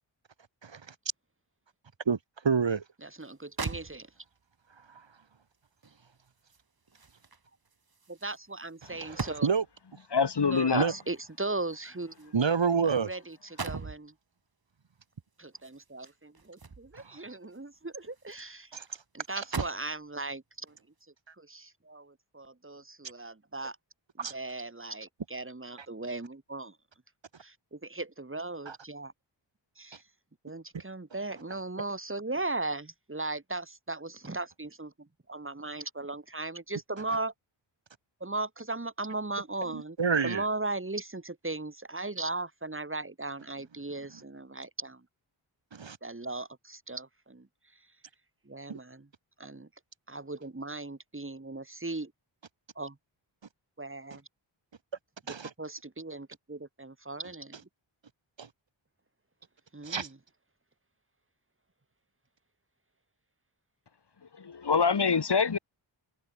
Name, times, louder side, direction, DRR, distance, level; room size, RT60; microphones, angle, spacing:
voice 1, 0.6-0.9 2.1-2.2 2.4-2.8 9.0-9.6 10.7-10.9 12.3-13.1 18.7-18.8 19.4-19.5 24.2-24.3 28.7-28.8 39.7-40.4 45.7-46.0 48.7-48.8 55.3-55.5 58.4-58.5 59.8-60.1, right 5 dB, 65° right, 4.0 m, -28 dB
voice 2, 3.0-4.1 8.1-9.5 10.5-12.3 12.8-14.1 15.4-18.8 19.1-20.7 21.4-23.8 24.2-26.8 27.4-29.1 29.8-30.0 30.4-37.3 38.2-40.0 40.2-45.0 46.0-47.5 48.5-49.1 49.4-49.7 50.1-52.1 52.8-53.0 53.8-54.2 55.6-57.6 59.7-60.2, right 2 dB, 25° right, 5.2 m, -38 dB
sound 1, 3.2-3.3 3.6-4.4 5.8-9.8 10.9-13.0 13.3-14.0 15.5-17.1 17.5-18.5 18.8-18.9 19.3-20.0 20.7-20.9, right 4 dB, 50° right, 5.1 m, -41 dB
voice 3, 10.1-10.9 64.4-65.6, left 5 dB, 55° left, 2.7 m, -25 dB
wide cardioid pair, 110°, 47 cm